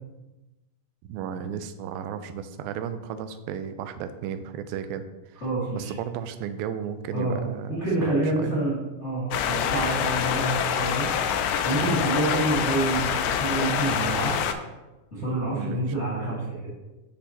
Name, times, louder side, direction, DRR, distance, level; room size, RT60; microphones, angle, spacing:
voice 1, 1.1-5.0 5.3-5.4 5.8-8.6 11.8-12.1 15.6-15.9, right 8 dB, 90° right, 10 dB, 2.4 m, -34 dB
voice 2, 5.4-5.9 7.1-7.4 7.7-11.1 11.6-14.4 15.1-16.5, right 2 dB, 25° left, -8 dB, 1.6 m, -27 dB
sound 1, 9.3-14.5, left 8 dB, 80° left, 1.9 m, -26 dB
8.0 x 6.3 x 2.9 m, 1.1 s
omnidirectional pair, 4.1 m